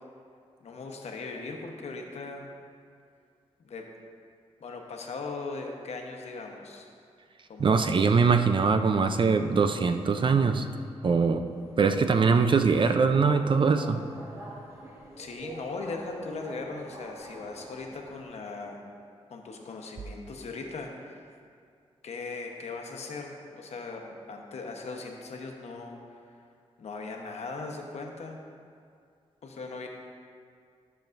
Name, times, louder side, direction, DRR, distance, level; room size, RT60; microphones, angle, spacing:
voice 1, 0.6-2.5 3.6-3.8 4.6-6.9 7.5-8.1 15.2-18.8 19.3-21.2 22.0-26.2 26.8-28.4 29.4-29.9, left 3 dB, 70° left, 2 dB, 1.0 m, -39 dB
voice 2, 7.6-10.7 11.0-11.4 11.8-14.0, right 5 dB, 45° right, 8 dB, 0.5 m, -22 dB
Subway metro underground, 11.4-18.2, right 1 dB, 25° right, 1.4 m, -45 dB
13.0 x 7.0 x 2.6 m, 2.3 s
cardioid pair, 85°, 11 cm